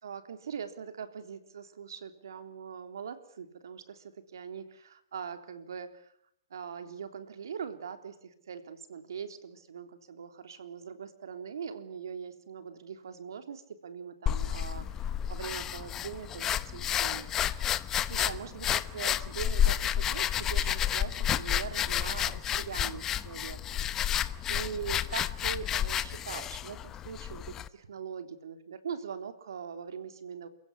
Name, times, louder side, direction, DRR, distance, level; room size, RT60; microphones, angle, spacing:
voice 1, 0.0-6.1 6.5-17.7 18.1-30.5, right 7 dB, 75° right, 8 dB, 3.5 m, -42 dB
sound 1, 14.3-27.7, left 10 dB, 20° left, 0.9 m, -31 dB
29.5 x 16.5 x 9.7 m, 0.74 s
hypercardioid pair, 150°, 2 cm